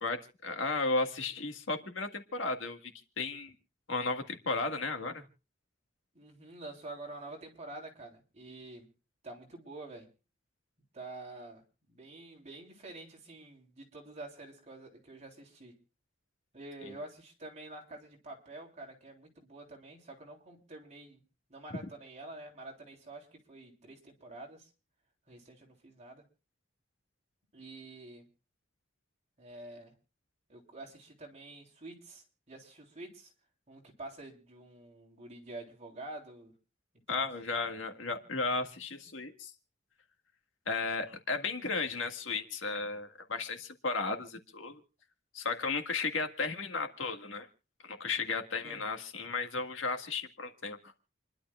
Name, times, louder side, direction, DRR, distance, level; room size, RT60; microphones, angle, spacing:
voice 1, 0.0-3.5 3.9-5.2 37.1-39.5 40.7-44.8 45.3-47.5 47.8-50.8, left 3 dB, 85° left, 5 dB, 1.8 m, -34 dB
voice 2, 6.1-8.9 9.2-10.1 10.9-11.6 11.9-15.8 16.5-21.2 21.5-24.7 25.3-26.2 27.5-28.3 29.4-29.9 30.5-33.3 33.7-36.5 37.1-37.3 48.6-48.9, right 2 dB, 35° right, 1 dB, 3.5 m, -48 dB
28.5 x 11.5 x 2.4 m, 0.34 s
head